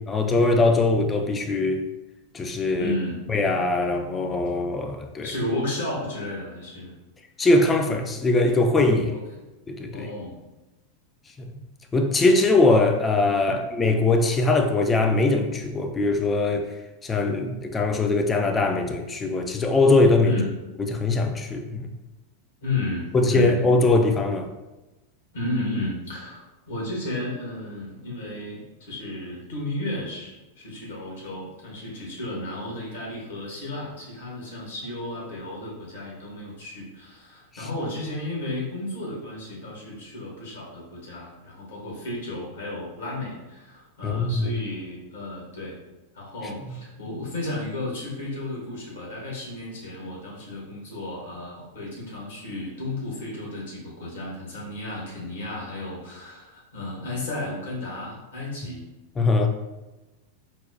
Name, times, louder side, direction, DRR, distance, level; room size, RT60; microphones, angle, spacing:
voice 1, 0.1-1.9 2.3-2.9 3.3-5.3 7.4-9.1 9.7-10.1 11.4-11.5 11.9-16.7 17.0-20.4 20.8-21.9 23.1-24.5 44.0-44.5 59.2-59.5, left 2 dB, 20° left, 5 dB, 0.4 m, -21 dB
voice 2, 2.8-3.2 5.2-7.0 9.1-9.2 9.9-10.4 20.2-20.5 22.6-23.6 25.3-45.8 46.1-58.8, left 2 dB, 65° left, -4 dB, 1.2 m, -33 dB
4.0 x 2.1 x 2.5 m, 1.1 s
figure-of-eight pair, 90°, 0 cm